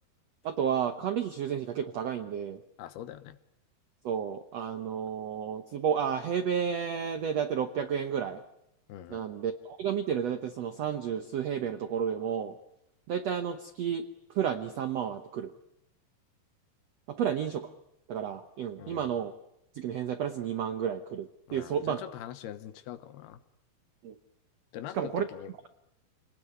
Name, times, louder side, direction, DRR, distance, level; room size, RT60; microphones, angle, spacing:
voice 1, 0.4-2.6 4.0-8.4 9.1-12.5 13.1-14.0 14.3-15.5 17.2-17.6 18.1-19.3 19.7-22.0 24.0-24.1 24.9-25.3, right 8 dB, 80° right, 9 dB, 1.4 m, -31 dB
voice 2, 2.8-3.4 8.9-9.3 18.8-19.2 21.5-23.4 24.7-25.7, left 11 dB, 85° left, 11 dB, 3.1 m, -43 dB
28.0 x 19.0 x 9.5 m, 0.86 s
omnidirectional pair, 4.5 m